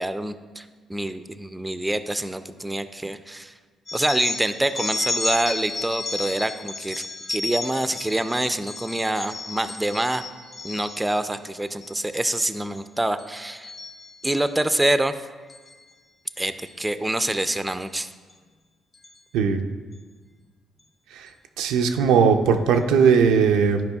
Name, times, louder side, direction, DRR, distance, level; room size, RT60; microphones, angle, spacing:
voice 1, 0.0-3.5 3.9-7.0 7.3-10.2 10.6-13.7 14.2-15.2 16.4-18.1, right 1 dB, 10° right, 11 dB, 0.3 m, -26 dB
sound 1, 3.9-11.2 11.7-12.0 12.4-12.8 13.2-14.5 15.5-15.7 16.7-16.8 17.8-17.9 18.3-18.4 18.9-19.2, left 3 dB, 40° left, 0.7 m, -33 dB
voice 2, 21.6-23.8, right 6 dB, 90° right, 5 dB, 0.4 m, -19 dB
10.5 x 4.8 x 2.3 m, 1.4 s
supercardioid pair, 70°, 0 cm